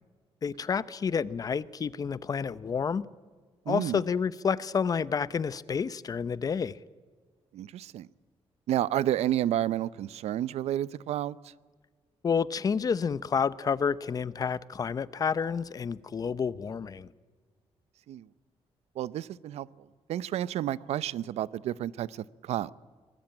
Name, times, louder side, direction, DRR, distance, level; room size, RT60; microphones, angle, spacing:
voice 1, 0.4-3.1 3.7-6.8 12.2-17.1, left 6 dB, 35° left, 17 dB, 0.7 m, -29 dB
voice 2, 3.7-4.0 7.5-8.1 8.7-11.4 18.1-18.3 19.0-19.7 20.1-22.7, right 12 dB, 85° right, 19 dB, 0.7 m, -30 dB
25.0 x 19.5 x 8.9 m, 1.5 s
cardioid pair, 135°, 11 cm